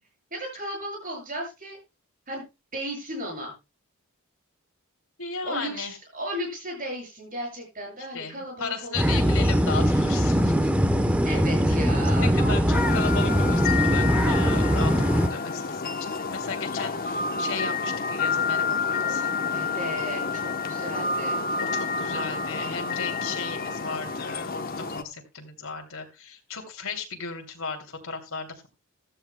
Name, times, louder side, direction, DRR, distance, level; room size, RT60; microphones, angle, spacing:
voice 1, 0.3-1.8 2.3-2.4 2.7-3.5 5.4-9.2 11.2-12.9 19.5-21.4, equal, 40° right, 1 dB, 7.9 m, -35 dB
voice 2, 5.2-6.0 8.1-10.7 12.2-19.3 21.6-28.7, left 5 dB, 65° left, 3 dB, 2.9 m, -35 dB
sound 1, 8.9-15.3, equal, 5° right, 0.9 m, -21 dB
sound 2, 12.7-25.0, left 4 dB, 40° left, 1.0 m, -29 dB
15.5 x 13.5 x 2.2 m, 0.26 s
head